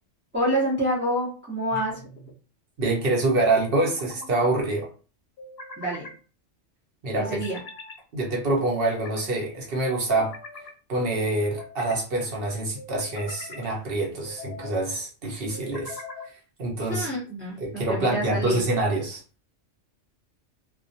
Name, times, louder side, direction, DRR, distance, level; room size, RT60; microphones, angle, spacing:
voice 1, 0.3-1.9 5.8-6.1 7.2-7.6 16.8-18.6, equal, 15° right, -6 dB, 0.5 m, -27 dB
sound 1, 1.7-2.4 3.8-4.5 5.4-6.2 7.2-8.0 8.6-9.2 9.9-10.7 11.4-12.0 12.8-13.7 14.2-14.8 15.5-16.3, left 2 dB, 60° left, 0.8 m, -42 dB
voice 2, 2.8-4.9 7.0-7.4 8.1-10.4 10.9-16.0 16.6-17.1 17.6-19.2, right 2 dB, 55° right, 0 dB, 0.8 m, -26 dB
2.2 x 2.1 x 2.6 m, 0.37 s
omnidirectional pair, 1.2 m